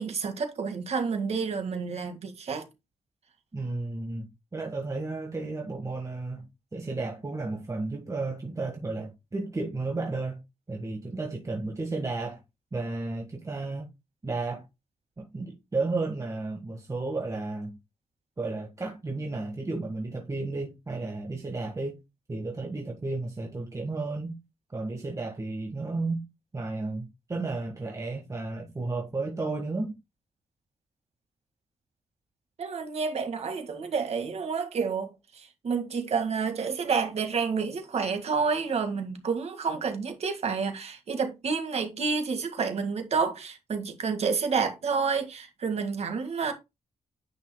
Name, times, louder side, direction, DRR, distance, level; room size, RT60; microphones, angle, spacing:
voice 1, 0.0-2.6 32.6-46.5, right 5 dB, 65° right, 1.8 m, -29 dB
voice 2, 3.5-6.4 6.7-10.4 10.7-12.4 12.7-13.9 14.2-14.6 15.2-17.8 18.4-22.0 22.3-24.4 24.7-26.2 26.5-29.9, right 3 dB, 25° right, 1.5 m, -33 dB
9.7 x 5.6 x 2.2 m
cardioid pair, 95°, 12 cm